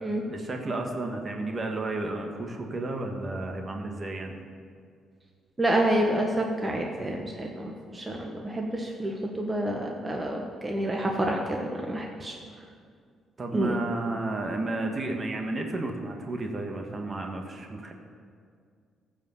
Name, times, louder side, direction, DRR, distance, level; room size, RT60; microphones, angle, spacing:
voice 1, 0.3-4.4 13.4-17.9, right 2 dB, 40° right, 3 dB, 1.6 m, -32 dB
voice 2, 5.6-12.4 13.5-13.8, right 1 dB, 25° right, 0 dB, 1.3 m, -28 dB
14.5 x 5.1 x 6.8 m, 2.2 s
supercardioid pair, 55°, 0 cm